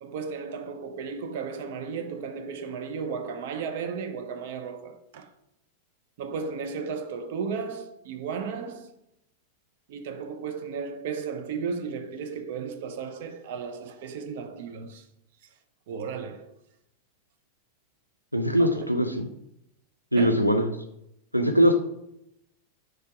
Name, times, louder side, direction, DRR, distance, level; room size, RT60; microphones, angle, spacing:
voice 1, 0.0-5.3 6.2-8.9 9.9-15.0 15.9-16.5 18.6-18.7 20.1-20.5, right 5 dB, 55° right, 0.7 m, -34 dB
voice 2, 18.3-19.3 20.1-20.7 21.3-21.8, equal, 90° right, 0.5 m, -21 dB
4.7 x 4.6 x 4.7 m
figure-of-eight pair, 90°, 0 cm